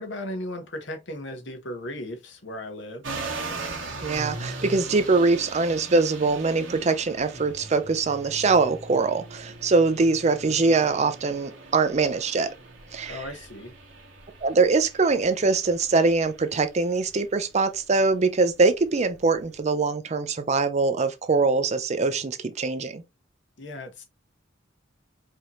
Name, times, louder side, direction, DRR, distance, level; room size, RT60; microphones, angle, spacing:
voice 1, 0.0-3.0 13.1-13.7 23.6-24.0, left 1 dB, 70° left, 1.1 m, -36 dB
sound 1, 3.0-19.6, right 3 dB, 85° right, 1.5 m, -40 dB
voice 2, 4.0-12.5 12.9-13.2 14.4-23.0, right 3 dB, 35° right, 0.5 m, -23 dB
4.8 x 2.8 x 3.1 m
head